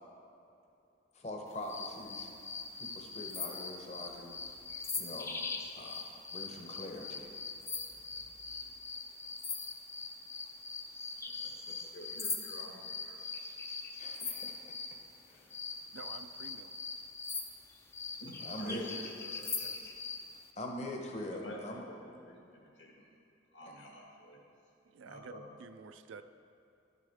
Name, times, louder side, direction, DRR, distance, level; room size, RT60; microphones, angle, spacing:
voice 1, 1.1-2.3 2.7-4.4 5.0-7.3 14.0-14.7 15.3-15.5 18.4-18.9 20.6-21.9, left 1 dB, 35° left, 1 dB, 0.8 m, -43 dB
sound 1, 1.7-15.0 15.5-20.3, left 4 dB, 15° left, 0.3 m, -41 dB
voice 2, 11.3-13.2 18.2-19.5 21.3-21.9 22.2-23.0 23.5-24.4 25.0-25.4, equal, 70° left, -2 dB, 1.7 m, -49 dB
voice 3, 15.9-16.7 19.6-19.9 24.8-26.2, right 5 dB, 80° right, 10 dB, 0.4 m, -50 dB
11.5 x 6.6 x 3.5 m, 2.7 s
head